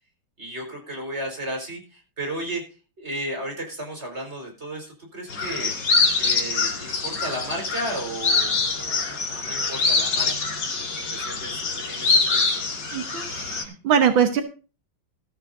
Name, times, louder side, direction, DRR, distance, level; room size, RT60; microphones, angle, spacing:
voice 1, 0.4-2.6 3.0-5.7 6.2-10.5 10.9-12.2 12.5-12.6, right 1 dB, 35° right, 2 dB, 4.9 m, -34 dB
sound 1, 5.3-13.6, left 4 dB, 65° left, 2.9 m, -24 dB
voice 2, 12.9-14.4, right 8 dB, 85° right, 6 dB, 2.0 m, -22 dB
15.5 x 13.5 x 2.6 m, 0.34 s
omnidirectional pair, 2.1 m